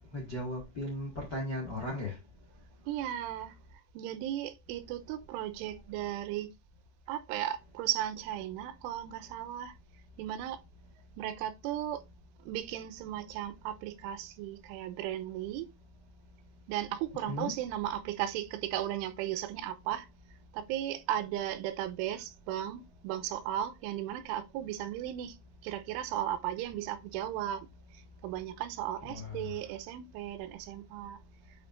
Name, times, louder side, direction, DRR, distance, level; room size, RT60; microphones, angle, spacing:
voice 1, 0.0-2.2 17.3-17.5 29.1-29.5, left 1 dB, 80° left, 0.9 m, -37 dB
voice 2, 2.9-3.5 3.9-6.5 7.1-9.7 10.2-10.6 11.2-12.0 12.4-15.7 16.7-20.1 20.5-25.4 25.6-27.7 28.2-31.2, right 12 dB, 85° right, 3.2 m, -36 dB
8.4 x 5.8 x 2.5 m
omnidirectional pair, 5.7 m